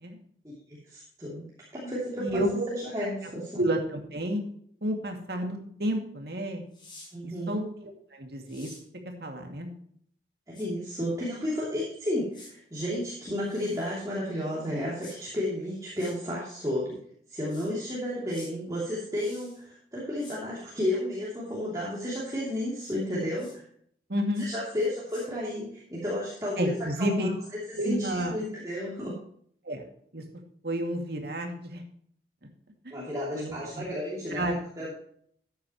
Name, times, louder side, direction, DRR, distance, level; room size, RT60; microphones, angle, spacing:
voice 1, 0.7-1.5 1.7-3.6 7.1-7.6 10.5-17.0 17.3-23.6 24.4-27.3 27.8-29.2 32.9-34.9, left 1 dB, 20° right, -6 dB, 2.9 m, -32 dB
voice 2, 2.2-2.7 3.6-4.4 4.8-6.6 7.5-7.6 8.1-8.7 9.0-9.7 24.1-24.5 26.6-27.3 27.8-28.4 29.6-29.9 30.1-30.2 30.6-31.8 32.8-32.9 33.3-33.9 34.3-34.6, equal, 55° right, 3 dB, 2.3 m, -30 dB
sound 1, 6.7-7.1 8.4-8.8 10.5-10.7 12.3-12.5 13.4-14.0 15.0-15.2 15.9-16.1 17.5-17.7 18.3-18.5 19.1-19.6 20.2-20.4 22.8-22.9 23.4-23.6 24.3-24.5 24.8-25.3, left 2 dB, 25° left, 5.3 m, -50 dB
13.5 x 9.4 x 3.1 m, 0.62 s
head